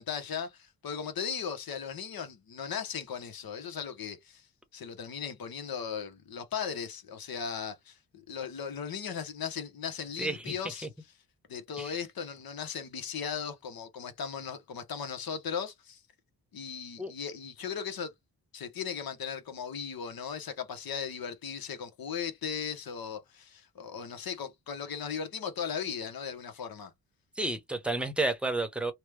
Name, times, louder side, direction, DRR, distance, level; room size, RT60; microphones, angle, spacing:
voice 1, 0.0-4.5 4.7-10.9 11.5-16.0 16.5-18.1 18.5-26.9, left 7 dB, 65° left, 1.1 m, -37 dB
voice 2, 27.4-28.9, right 2 dB, 5° right, 0.9 m, -31 dB
3.0 x 2.3 x 3.3 m
cardioid pair, 80°, 39 cm